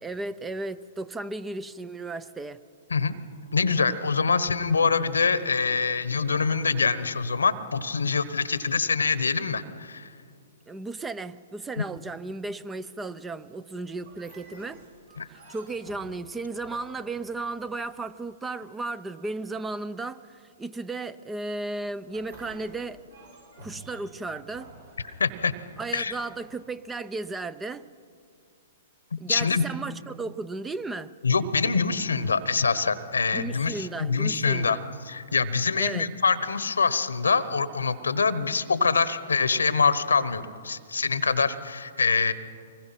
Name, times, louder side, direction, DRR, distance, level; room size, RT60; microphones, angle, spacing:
voice 1, 0.0-2.6 10.7-14.8 15.3-20.2 20.6-23.0 23.6-24.7 25.8-27.8 29.2-31.1 33.3-34.8 35.8-36.1, right 3 dB, 10° right, 16 dB, 0.6 m, -35 dB
voice 2, 3.5-10.1 11.8-11.9 15.2-15.3 25.2-25.5 25.9-26.1 29.1-29.6 31.2-34.8 35.1-42.3, left 5 dB, 85° left, 15 dB, 1.1 m, -25 dB
sound 1, 14.0-18.3 22.0-27.1, right 2 dB, 75° right, 7.4 m, -51 dB
25.0 x 21.0 x 5.9 m, 2.3 s
hypercardioid pair, 120°, 0 cm